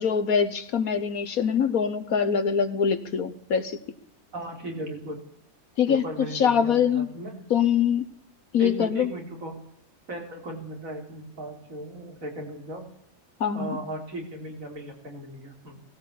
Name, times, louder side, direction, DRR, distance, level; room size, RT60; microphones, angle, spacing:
voice 1, 0.0-3.8 5.8-6.0 6.3-7.1 7.5-8.1 8.5-9.1 13.4-13.8, left 7 dB, 65° left, 10 dB, 1.5 m, -23 dB
voice 2, 4.3-5.2 5.9-7.3 8.6-9.6 10.1-12.9 13.5-15.8, right 1 dB, 60° right, 2 dB, 4.4 m, -36 dB
19.0 x 17.0 x 8.5 m, 0.69 s
omnidirectional pair, 1.6 m